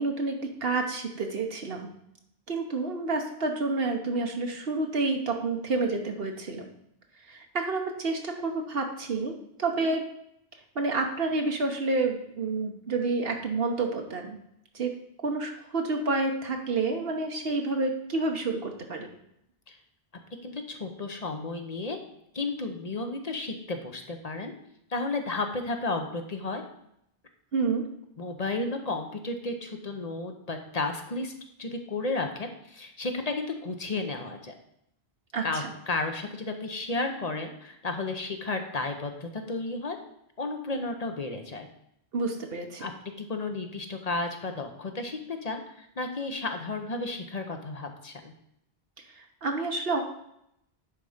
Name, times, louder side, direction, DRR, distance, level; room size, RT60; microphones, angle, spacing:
voice 1, 0.0-1.9 2.5-6.7 7.3-10.0 10.7-14.4 14.7-14.9 15.2-19.1 27.5-27.8 35.3-35.7 42.1-42.9 49.2-50.0, right 3 dB, 65° right, 3 dB, 1.2 m, -29 dB
voice 2, 20.4-22.0 22.3-24.5 24.9-26.6 28.2-31.3 31.6-34.5 35.4-40.0 40.4-41.7 42.8-42.9 43.2-48.3, left 3 dB, 40° left, 5 dB, 0.9 m, -33 dB
10.5 x 4.2 x 4.9 m, 0.76 s
omnidirectional pair, 1.1 m